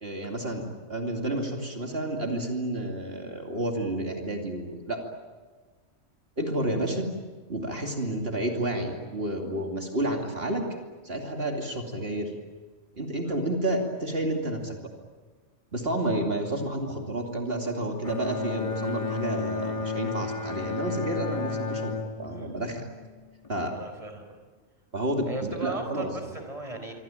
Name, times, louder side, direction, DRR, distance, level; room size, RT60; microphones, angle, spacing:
voice 1, 0.0-5.0 6.4-7.1 7.5-10.7 11.0-12.3 13.0-14.9 15.7-22.9 23.5-23.8 24.9-26.1, right 1 dB, 50° right, 2 dB, 2.8 m, -30 dB
Bowed string instrument, 18.0-23.5, left 4 dB, 25° left, 1.4 m, -33 dB
voice 2, 23.7-24.3 25.3-26.9, right 2 dB, 25° right, 6 dB, 4.5 m, -37 dB
26.0 x 25.0 x 8.9 m, 1.4 s
omnidirectional pair, 1.3 m